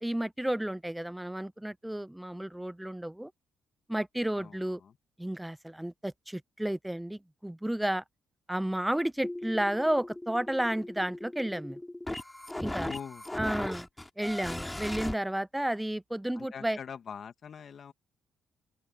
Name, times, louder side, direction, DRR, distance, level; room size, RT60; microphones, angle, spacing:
voice 1, 0.0-3.3 3.9-4.8 5.2-8.0 8.5-11.8 12.6-12.9 13.4-13.9 14.2-16.8, right 1 dB, 5° right, 0.6 m, -32 dB
voice 2, 4.3-5.0 12.8-13.6 16.3-17.9, left 7 dB, 55° left, 2.3 m, -44 dB
sound 1, 9.2-15.1, left 1 dB, 10° left, 2.9 m, -38 dB
open air
cardioid pair, 90°, 0 cm